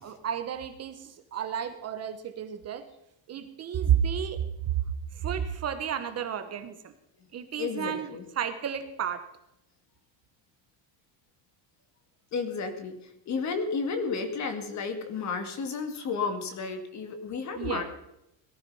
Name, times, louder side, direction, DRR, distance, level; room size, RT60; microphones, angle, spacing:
voice 1, 0.0-2.8 3.3-4.4 5.1-6.8 7.3-8.1 8.4-9.2 17.5-17.8, right 9 dB, 30° right, 8 dB, 1.1 m, -31 dB
voice 2, 7.6-8.2 12.3-13.0 13.3-17.8, left 4 dB, 35° left, 8 dB, 2.1 m, -32 dB
18.5 x 13.0 x 5.5 m, 0.83 s
cardioid pair, 175°, 47 cm